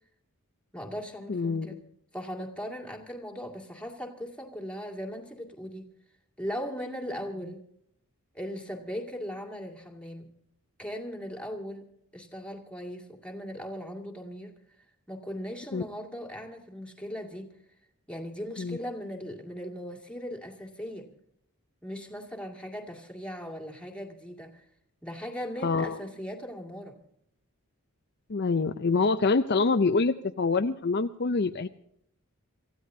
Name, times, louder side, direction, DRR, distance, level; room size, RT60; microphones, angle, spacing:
voice 1, 0.7-1.8 2.1-5.9 6.4-7.6 8.3-10.3 10.8-11.9 12.1-14.5 15.1-17.5 18.1-21.1 21.8-24.7 25.0-27.0, equal, 5° left, 2 dB, 2.2 m, -38 dB
voice 2, 1.3-1.8 15.7-15.8 18.6-18.8 25.6-26.0 28.3-31.7, left 4 dB, 50° left, 8 dB, 0.6 m, -26 dB
28.0 x 15.0 x 2.7 m, 0.71 s
head